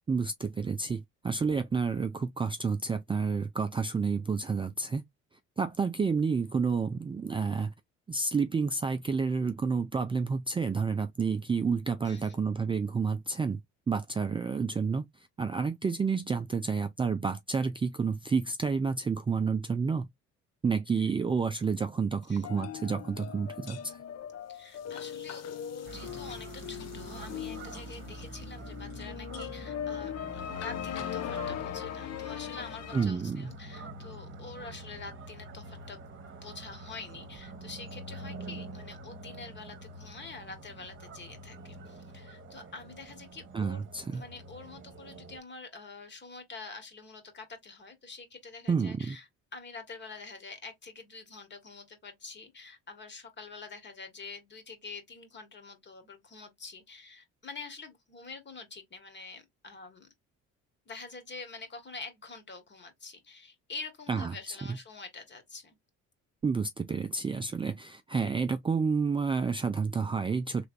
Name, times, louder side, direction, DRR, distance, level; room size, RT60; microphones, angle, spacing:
voice 1, 0.1-5.0 5.6-7.7 8.1-13.6 13.9-20.1 20.6-24.0 32.9-33.5 43.5-44.2 48.7-49.2 64.1-64.8 66.4-70.6, right 5 dB, 15° right, 0.4 m, -30 dB
voice 2, 12.0-12.4 22.3-22.5 24.5-43.8 44.1-49.2 49.5-60.1 60.8-65.8, left 4 dB, 35° left, 1.6 m, -46 dB
sound 1, 22.4-33.1, left 9 dB, 55° left, 0.8 m, -39 dB
sound 2, 25.8-45.4, right 2 dB, 40° right, 1.0 m, -46 dB
3.4 x 3.1 x 2.5 m
supercardioid pair, 80°, 31 cm